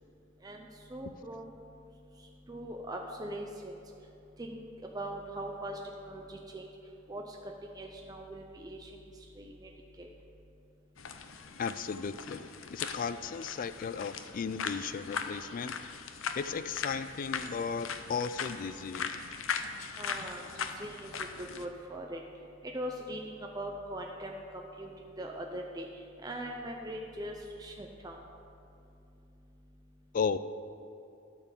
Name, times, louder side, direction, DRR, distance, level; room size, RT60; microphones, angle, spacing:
voice 1, 0.4-1.5 2.5-3.8 4.4-6.7 7.1-7.4 7.6-8.9 9.4-9.7 10.0-10.1 20.0-22.2 22.6-25.9 26.2-28.2, right 1 dB, 20° right, 1 dB, 0.6 m, -41 dB
sound 1, 11.0-21.7, left 6 dB, 80° left, 0.7 m, -39 dB
voice 2, 11.6-12.5 12.7-15.8 16.4-19.1 30.1-30.4, left 6 dB, 45° left, 13 dB, 0.3 m, -35 dB
12.0 x 4.6 x 7.2 m, 2.8 s
head